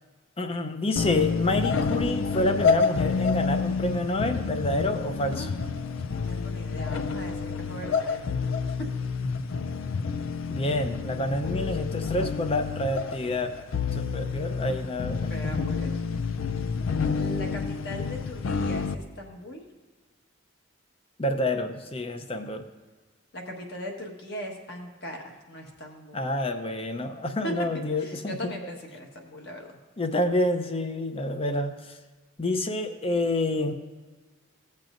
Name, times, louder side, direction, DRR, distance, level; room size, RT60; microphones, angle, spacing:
voice 1, 0.4-5.5 10.5-13.5 13.9-15.7 21.2-22.6 26.1-28.4 30.0-32.0 32.4-33.7, left 1 dB, 30° left, 7 dB, 0.6 m, -28 dB
sound 1, 1.0-18.9, left 5 dB, 80° left, 0.4 m, -29 dB
voice 2, 6.0-8.3 8.7-8.8 15.0-16.0 17.1-19.6 23.3-26.3 27.4-29.8, equal, 55° left, 1 dB, 1.4 m, -39 dB
16.0 x 7.4 x 2.6 m, 1.3 s
head